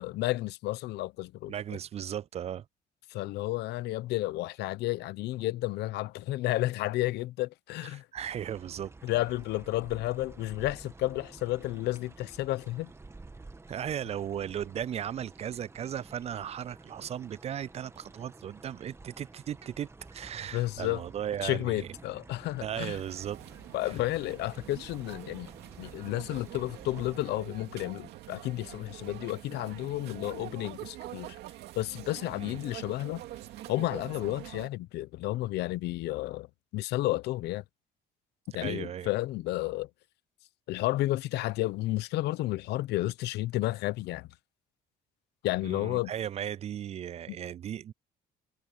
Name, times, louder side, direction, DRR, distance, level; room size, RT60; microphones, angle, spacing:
voice 1, 0.0-1.5 3.1-8.0 9.0-12.9 20.5-21.0 21.4-23.0 23.7-25.5 25.8-31.4 31.7-33.2 33.7-36.5 36.7-37.6 38.5-39.9 40.7-44.3 45.4-46.1 47.3-47.4, left 17 dB, 80° left, 0.9 m, -32 dB
voice 2, 1.5-2.7 7.8-8.9 13.7-21.9 22.6-23.4 23.8-24.0 32.4-32.6 38.5-39.1 45.6-47.9, right 10 dB, 40° right, 0.4 m, -36 dB
sound 1, 8.2-27.2, right 3 dB, 15° right, 1.6 m, -51 dB
sound 2, 22.8-34.7, right 15 dB, 85° right, 2.3 m, -45 dB
cardioid pair, 110°, 17 cm